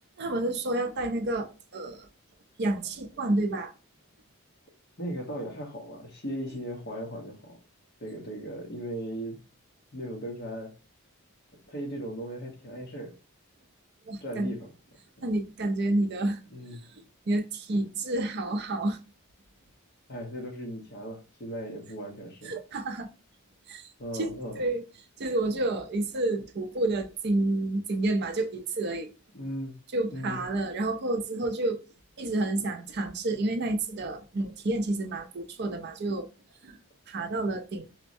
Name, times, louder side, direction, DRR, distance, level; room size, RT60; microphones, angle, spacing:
voice 1, 0.2-2.1 2.6-3.7 14.1-14.6 15.2-16.4 16.9-19.0 22.4-23.1 23.7-24.8 25.2-29.1 29.9-31.8 32.2-36.3 36.6-36.8 37.1-37.9, right 2 dB, 50° right, 0.5 m, -29 dB
voice 2, 5.0-7.6 8.0-9.4 9.9-10.7 11.7-13.1 14.2-14.7 16.5-16.8 20.1-22.5 24.0-24.6 29.3-29.7 30.1-30.4, equal, 45° left, 0.9 m, -37 dB
4.3 x 2.1 x 2.6 m
head